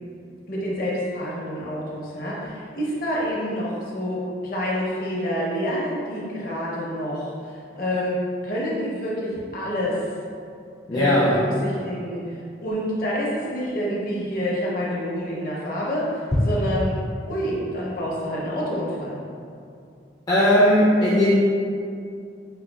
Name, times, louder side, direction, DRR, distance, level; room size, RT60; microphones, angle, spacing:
voice 1, 0.5-10.0 10.9-16.1 16.4-17.0 17.3-19.1, equal, 50° left, -5 dB, 0.7 m, -27 dB
voice 2, 10.9-11.4 20.3-21.4, equal, 20° left, -8 dB, 0.3 m, -18 dB
4.9 x 2.2 x 2.2 m, 2.4 s
head